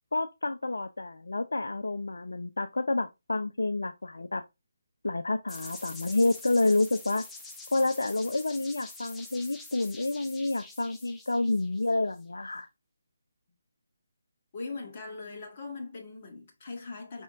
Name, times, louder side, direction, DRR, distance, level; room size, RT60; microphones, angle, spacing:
voice 1, 0.1-4.4 5.0-7.2 7.7-12.7, left 2 dB, 80° left, 0.4 m, -29 dB
sound 1, 5.5-12.2, left 3 dB, 5° left, 0.6 m, -46 dB
voice 2, 14.5-17.2, left 3 dB, 40° left, 1.3 m, -40 dB
5.2 x 3.5 x 2.5 m
figure-of-eight pair, 150°, 0 cm